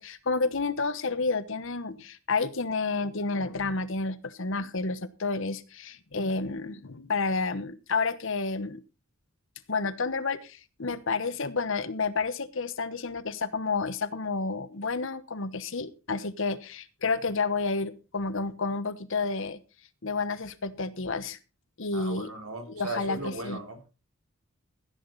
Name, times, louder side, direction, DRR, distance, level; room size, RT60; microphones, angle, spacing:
voice 1, 0.0-8.8 9.7-19.6 20.0-21.4 21.8-22.3 22.7-23.6, left 4 dB, 60° left, 15 dB, 1.1 m, -30 dB
voice 2, 21.9-23.9, right 2 dB, 85° right, 4 dB, 4.2 m, -37 dB
15.0 x 10.0 x 4.0 m, 0.30 s
head